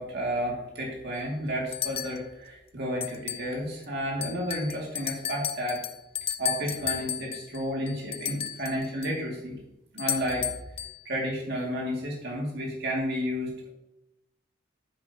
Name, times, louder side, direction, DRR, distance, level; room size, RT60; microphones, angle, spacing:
voice 1, 0.0-5.8 6.4-9.6 9.9-10.5 11.0-13.7, equal, 60° right, -2 dB, 2.4 m, -31 dB
sound 1, 1.2-1.3 1.7-2.2 3.0-3.5 3.8-3.9 4.2-9.2 10.0-11.0, left 8 dB, 30° left, 0.5 m, -34 dB
10.5 x 9.0 x 2.9 m, 0.92 s
head